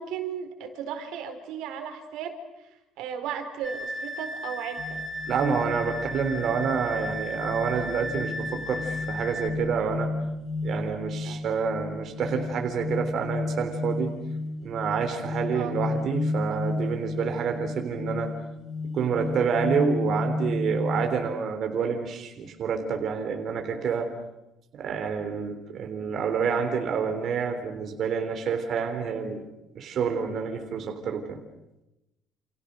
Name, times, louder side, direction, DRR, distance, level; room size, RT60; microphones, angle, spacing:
voice 1, 0.0-2.3 3.0-5.0 11.2-11.5 15.5-15.7, right 8 dB, 80° right, 6 dB, 4.6 m, -35 dB
sound 1, 3.6-9.5, equal, ahead, 2.4 m, -35 dB
sound 2, 4.8-21.1, left 2 dB, 35° left, 5.9 m, -33 dB
voice 2, 5.3-10.1 10.6-14.1 14.6-18.3 18.9-24.1 24.7-29.4 29.8-31.4, right 6 dB, 45° right, 5 dB, 3.5 m, -28 dB
29.5 x 29.0 x 6.7 m, 0.93 s
cardioid pair, 160°, 0 cm